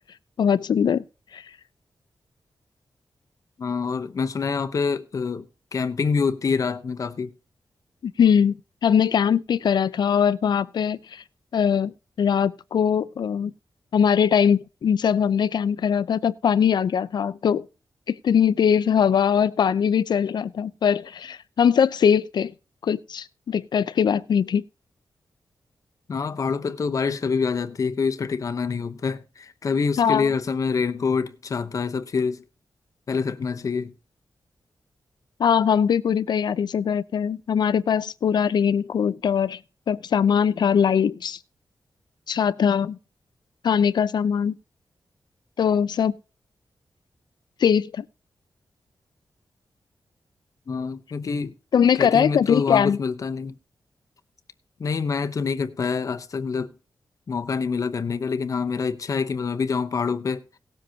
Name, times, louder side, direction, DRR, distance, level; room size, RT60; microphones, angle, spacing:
voice 1, 0.4-1.0 1.3-1.4 8.0-8.6 8.8-11.2 11.5-13.5 13.9-17.7 18.1-22.5 22.8-24.6 30.0-30.3 35.4-39.6 39.9-41.4 42.3-43.0 43.6-44.5 45.6-46.1 47.6-48.0 51.7-53.0, left 7 dB, 75° left, 0.6 m, -21 dB
voice 2, 3.6-7.3 26.1-32.4 33.1-33.9 50.7-51.5 52.0-53.5 54.8-56.7 57.3-60.4, left 5 dB, 50° left, 0.9 m, -26 dB
18.5 x 7.6 x 2.8 m
wide cardioid pair, 175°, 7 cm